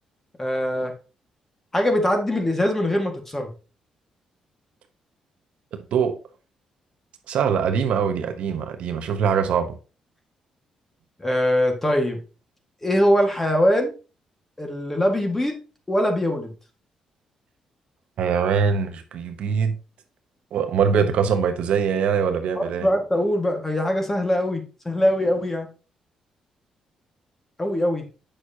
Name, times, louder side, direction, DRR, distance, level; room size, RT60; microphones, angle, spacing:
voice 1, 0.4-0.9 1.7-3.5 11.2-12.2 12.8-13.9 14.6-15.6 15.9-16.5 22.6-25.7 27.6-28.0, equal, 15° left, 1.7 m, -22 dB
voice 2, 7.3-9.7 18.2-19.7 20.5-22.9, right 6 dB, 75° right, 0.9 m, -22 dB
7.8 x 6.4 x 2.8 m
cardioid pair, 95°, 2 cm